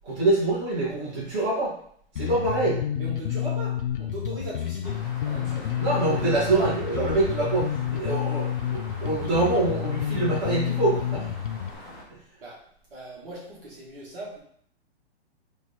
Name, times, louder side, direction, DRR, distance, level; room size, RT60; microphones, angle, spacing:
voice 1, 0.0-1.7 2.1-2.8 5.8-11.3 12.1-12.2, right 2 dB, 25° right, -8 dB, 1.9 m, -25 dB
Bass guitar, 2.2-11.8, left 10 dB, 50° left, 0.4 m, -29 dB
voice 2, 3.0-5.7 12.4-12.6 12.9-14.4, right 1 dB, 55° right, -5 dB, 1.8 m, -39 dB
sound 1, 4.8-12.0, equal, ahead, 0.5 m, -42 dB
4.4 x 2.7 x 4.2 m, 0.63 s
hypercardioid pair, 160°, 33 cm